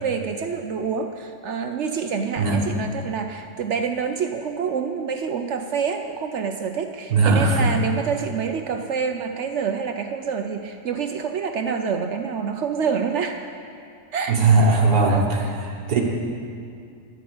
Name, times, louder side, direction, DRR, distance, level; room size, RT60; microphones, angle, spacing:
voice 1, 0.0-13.4 14.1-14.4 15.0-15.3, right 6 dB, 60° right, 6 dB, 0.8 m, -27 dB
voice 2, 7.1-7.7 14.3-15.4 15.9-16.0, right 3 dB, 90° right, -1 dB, 1.9 m, -18 dB
13.0 x 5.6 x 9.4 m, 2.4 s
omnidirectional pair, 1.6 m